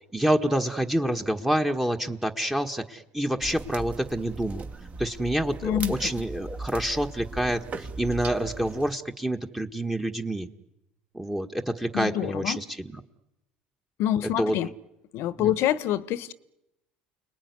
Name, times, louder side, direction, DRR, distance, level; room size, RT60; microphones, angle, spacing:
voice 1, 0.0-4.7 5.0-10.5 11.1-13.0 14.4-14.6 15.4-15.5, right 1 dB, 5° right, 4 dB, 1.6 m, -27 dB
sound 1, 3.4-8.9, right 4 dB, 30° right, 1.9 m, -38 dB
voice 2, 5.6-6.0 11.9-12.6 14.0-14.7 15.1-16.3, left 11 dB, 60° left, 16 dB, 1.2 m, -26 dB
30.0 x 20.5 x 9.7 m, 0.93 s
hypercardioid pair, 80°, 5 cm